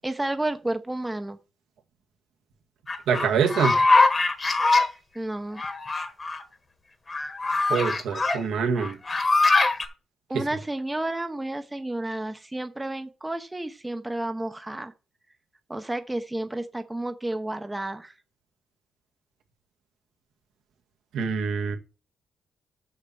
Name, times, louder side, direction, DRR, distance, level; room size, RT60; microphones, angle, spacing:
voice 1, 0.0-1.4 5.1-5.6 10.3-14.9 15.7-18.1, right 1 dB, 10° right, 0.8 m, -31 dB
sound 1, 2.9-4.9 5.6-6.4 7.1-8.4 8.8-9.8, left 3 dB, 25° left, 1.5 m, -22 dB
voice 2, 3.1-3.8 7.7-8.9 21.1-21.8, right 6 dB, 80° right, 1.5 m, -25 dB
6.6 x 5.8 x 7.0 m
cardioid pair, 120°, 0 cm